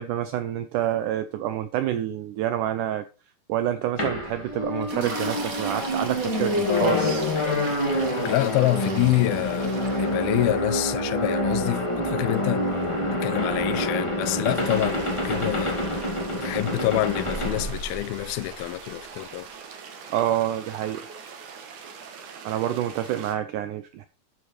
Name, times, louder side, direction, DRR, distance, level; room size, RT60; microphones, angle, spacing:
voice 1, 0.0-3.0 3.5-7.3 20.1-21.1 22.4-24.1, right 11 dB, 85° right, 1.8 m, -28 dB
sound 1, 4.0-18.5, left 1 dB, 15° left, 1.0 m, -27 dB
Toilet flush, 4.8-15.1 16.0-16.2 16.5-16.7, right 3 dB, 45° right, 1.1 m, -38 dB
voice 2, 6.5-12.7 13.1-16.1 16.4-19.5, left 17 dB, 85° left, 2.4 m, -27 dB
sound 2, 14.5-23.4, right 6 dB, 60° right, 2.6 m, -42 dB
12.0 x 4.8 x 4.3 m
omnidirectional pair, 4.2 m